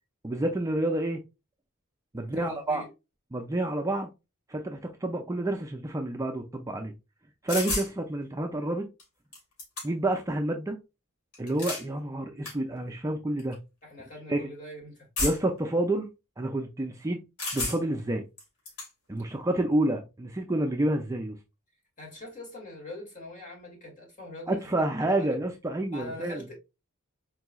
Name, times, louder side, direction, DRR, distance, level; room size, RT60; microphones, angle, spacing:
voice 1, 0.2-1.2 2.1-2.8 3.3-4.1 4.5-6.9 7.4-8.8 9.8-10.8 11.4-13.6 14.3-14.5 15.2-16.1 16.4-17.2 17.5-18.2 19.1-21.4 24.5-26.4, right 1 dB, 15° right, 0.4 m, -29 dB
voice 2, 2.2-2.9 13.8-15.1 22.0-24.6 25.1-25.4 25.9-26.6, left 1 dB, 35° left, 2.2 m, -43 dB
sound 1, 7.5-7.9 9.0-9.1 9.3-10.1 11.3-11.9 12.4-12.6 13.4-13.5 15.2-15.6 17.4-18.0 18.4-18.9, left 2 dB, 80° left, 2.3 m, -32 dB
4.5 x 3.0 x 2.3 m
head